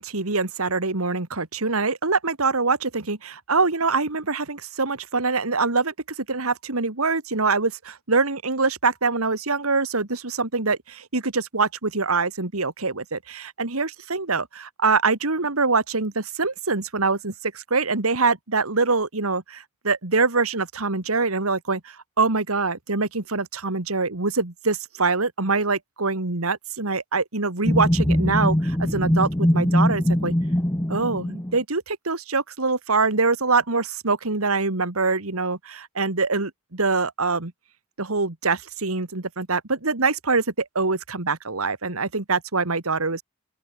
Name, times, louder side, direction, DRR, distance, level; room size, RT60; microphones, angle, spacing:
voice 1, 0.0-30.3 30.9-37.5 38.0-43.2, right 4 dB, 80° right, 2.2 m, -24 dB
sound 1, 27.6-31.6, left 1 dB, 15° left, 1.1 m, -22 dB
open air
head